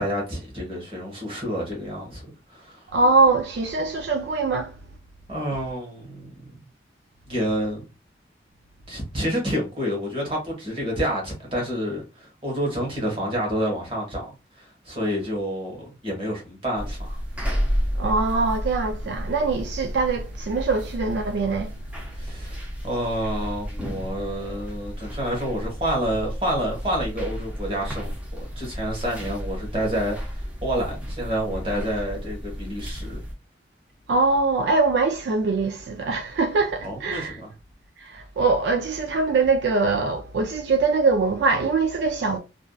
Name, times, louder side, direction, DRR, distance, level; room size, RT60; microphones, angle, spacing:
voice 1, 0.0-2.2 2.5-2.8 5.3-6.6 7.3-7.8 8.9-14.3 14.6-17.2 22.1-28.1 28.6-33.2 36.8-37.5, equal, 30° right, 1.1 m, -28 dB
voice 2, 2.9-4.7 18.0-21.7 34.1-37.4 38.0-42.4, right 3 dB, 70° right, 0.3 m, -22 dB
sound 1, 16.7-33.3, equal, 5° right, 0.5 m, -32 dB
2.6 x 2.2 x 2.2 m
head